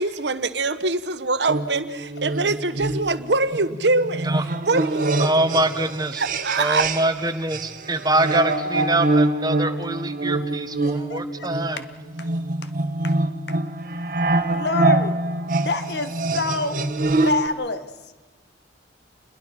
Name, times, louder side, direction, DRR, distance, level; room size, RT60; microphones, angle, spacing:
voice 1, 0.0-4.3 4.7-5.1 6.2-6.9, right 3 dB, 70° right, 11 dB, 1.3 m, -23 dB
sound 1, 1.5-7.2 7.5-17.5, right 2 dB, 50° right, 1.6 m, -25 dB
voice 2, 5.2-6.2 6.6-11.8, right 2 dB, 20° right, 9 dB, 1.5 m, -24 dB
voice 3, 10.8-11.2 13.0-13.2 13.5-13.6 14.5-15.2 15.6-16.8 17.2-17.9, left 3 dB, 65° left, 9 dB, 1.8 m, -27 dB
29.5 x 22.0 x 6.1 m, 1.2 s
head